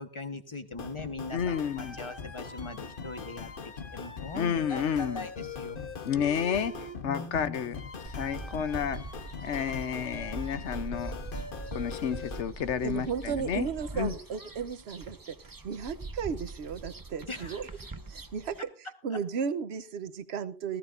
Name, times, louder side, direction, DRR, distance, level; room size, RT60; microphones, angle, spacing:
voice 1, 0.0-5.8 7.1-7.9 17.3-17.8 18.6-19.2, left 2 dB, 25° left, 1.3 m, -41 dB
sound 1, 0.7-12.4, left 5 dB, 50° left, 1.2 m, -41 dB
voice 2, 1.3-2.0 4.3-5.3 6.0-7.8 8.0-9.0 9.4-11.1 11.7-13.7 13.9-14.1, left 8 dB, 75° left, 1.2 m, -31 dB
sound 2, 8.1-18.6, right 3 dB, 20° right, 0.6 m, -42 dB
voice 3, 12.8-15.4 15.6-17.7 18.1-18.7 19.0-20.8, right 6 dB, 65° right, 1.1 m, -34 dB
18.5 x 15.0 x 2.6 m
omnidirectional pair, 1.2 m